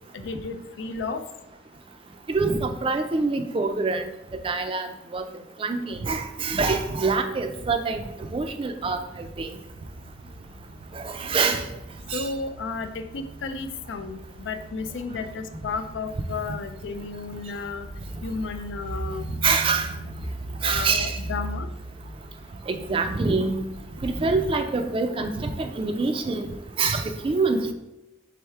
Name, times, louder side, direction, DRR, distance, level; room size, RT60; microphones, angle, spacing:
voice 1, 0.1-1.2 12.1-17.9 18.2-19.3 20.6-21.7, left 4 dB, 85° left, 9 dB, 0.4 m, -33 dB
voice 2, 2.3-4.0 4.4-5.3 5.6-8.0 8.3-9.5 10.9-11.6 12.1-12.3 19.4-19.9 20.6-21.2 22.7-23.6 24.0-26.5 26.8-27.7, right 4 dB, 30° right, 7 dB, 0.3 m, -25 dB
sound 1, 9.7-24.6, right 1 dB, 80° right, 0.6 m, -39 dB
3.5 x 3.4 x 4.4 m, 0.95 s
head